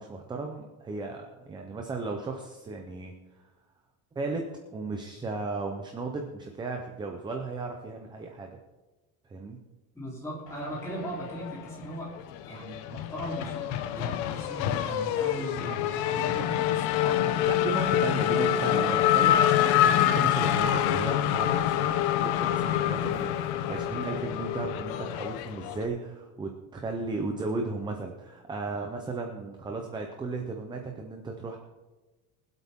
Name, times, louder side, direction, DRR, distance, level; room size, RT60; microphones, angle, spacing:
voice 1, 0.0-3.1 4.2-4.4 4.7-8.6 9.3-9.6 17.5-31.6, right 3 dB, 10° right, 3 dB, 0.6 m, -35 dB
voice 2, 9.9-12.1 12.4-17.5 17.8-17.9 18.2-18.9 23.0-23.2, right 1 dB, 5° left, -5 dB, 3.4 m, -38 dB
Race car auto racing / Accelerating revving vroom, 10.8-11.9 12.2-25.9, left 11 dB, 60° left, 0.9 m, -26 dB
23.5 x 8.2 x 3.6 m, 1.2 s
cardioid pair, 180°, 43 cm